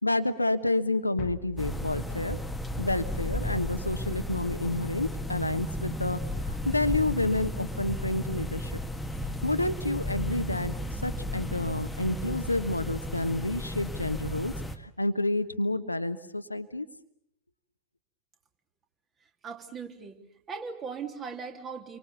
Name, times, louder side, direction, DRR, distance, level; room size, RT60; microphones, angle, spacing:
voice 1, 0.0-2.4 2.8-6.2 6.4-8.8 9.4-10.7 11.0-16.9, left 2 dB, 85° left, 10 dB, 1.2 m, -29 dB
sound 1, 1.2-3.7, left 7 dB, 45° left, 1.4 m, -45 dB
sound 2, 1.6-14.8, left 1 dB, 5° left, 1.7 m, -34 dB
voice 2, 19.4-20.2 20.5-22.0, right 5 dB, 25° right, 4 dB, 3.3 m, -38 dB
28.5 x 24.0 x 7.1 m, 0.71 s
figure-of-eight pair, 90°, 0 cm